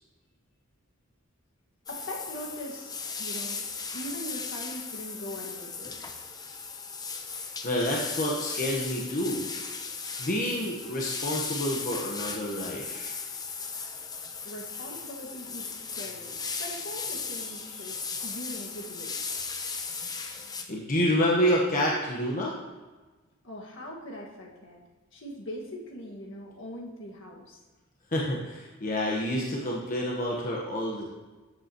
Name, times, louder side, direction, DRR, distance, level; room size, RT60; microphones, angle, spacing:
voice 1, 1.9-3.6 3.9-6.0 14.4-19.2 23.4-24.8 25.1-27.6, equal, 65° left, -2 dB, 1.8 m, -41 dB
sound 1, 1.9-20.6, left 5 dB, 20° left, 0.7 m, -37 dB
voice 2, 7.6-9.4 10.2-13.1 20.7-22.6 28.1-31.1, equal, 40° left, -3 dB, 1.2 m, -28 dB
13.5 x 8.0 x 3.0 m, 1.2 s
head